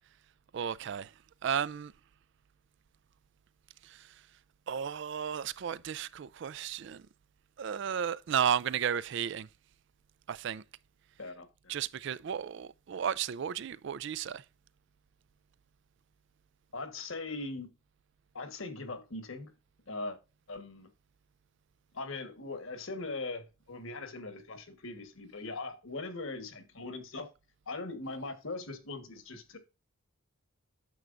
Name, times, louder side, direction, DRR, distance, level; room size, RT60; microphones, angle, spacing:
voice 1, 0.5-1.1 1.4-1.9 3.8-4.1 4.7-7.0 7.6-9.5 10.3-10.6 11.7-14.4, right 8 dB, 55° right, 0.3 m, -33 dB
voice 2, 11.2-11.8 16.7-17.7 18.3-19.5 19.9-20.2 20.5-20.9 21.9-27.3 27.7-29.6, left 3 dB, 65° left, 1.3 m, -40 dB
9.2 x 6.7 x 2.5 m
head